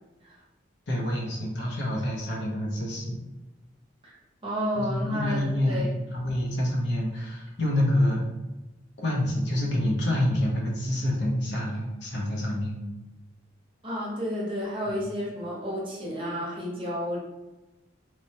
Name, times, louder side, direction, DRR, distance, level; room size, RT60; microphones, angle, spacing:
voice 1, 0.9-3.2 4.7-8.2 9.0-12.8 14.9-15.0, left 1 dB, 60° left, -2 dB, 0.7 m, -27 dB
voice 2, 4.4-5.4 5.6-5.9 13.8-17.2, equal, 25° right, -5 dB, 0.8 m, -31 dB
3.1 x 2.1 x 2.7 m, 1.0 s
head